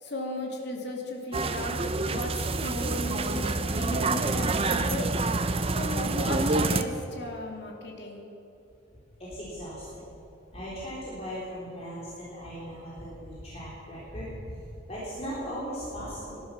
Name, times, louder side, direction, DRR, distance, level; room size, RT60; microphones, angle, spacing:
voice 1, 0.0-5.1 5.7-8.2, left 1 dB, 55° left, 0 dB, 2.8 m, -36 dB
sound 1, 1.3-6.8, right 3 dB, 30° right, 0.7 m, -27 dB
voice 2, 9.2-10.1 10.5-14.6 14.9-16.4, equal, 30° left, -7 dB, 3.7 m, -38 dB
19.5 x 12.0 x 6.1 m, 2.8 s
head